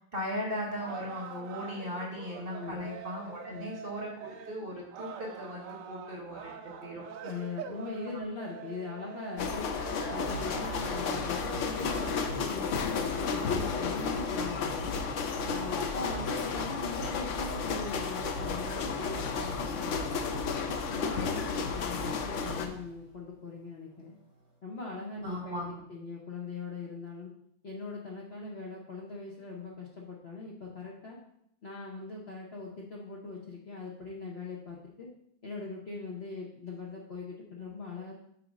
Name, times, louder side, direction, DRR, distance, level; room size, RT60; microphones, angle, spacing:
voice 1, 0.1-7.0 8.1-8.2 25.2-25.8, left 1 dB, 35° right, -3 dB, 1.1 m, -38 dB
sound 1, 0.7-12.3, right 7 dB, 80° right, 0.7 m, -45 dB
voice 2, 2.5-2.9 3.5-3.7 7.2-9.7 10.1-14.9 15.5-20.5 20.9-24.1 24.6-27.3 27.6-31.2 31.6-35.1 35.4-38.1, left 3 dB, 45° left, -3 dB, 0.9 m, -41 dB
sound 2, 9.4-22.7, left 5 dB, 75° left, 0.7 m, -33 dB
sound 3, 10.0-23.2, right 3 dB, 25° left, 2.3 m, -44 dB
6.1 x 3.7 x 5.2 m, 0.71 s
omnidirectional pair, 2.0 m